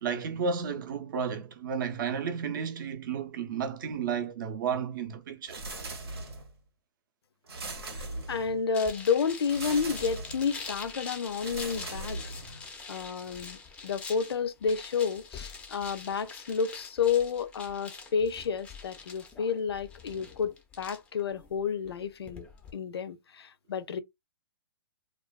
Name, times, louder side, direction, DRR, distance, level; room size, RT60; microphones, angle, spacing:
voice 1, 0.0-5.6, right 6 dB, 55° right, 0.6 m, -32 dB
sound 1, 5.5-6.6 7.5-8.7 9.5-10.5 11.4-12.7, right 2 dB, 85° right, 0.9 m, -39 dB
voice 2, 7.9-12.3 12.9-13.6 13.8-24.0, left 6 dB, 85° left, 0.5 m, -31 dB
sound 2, 8.7-22.7, left 4 dB, 10° left, 0.3 m, -45 dB
2.4 x 2.2 x 2.3 m
hypercardioid pair, 145°, 13 cm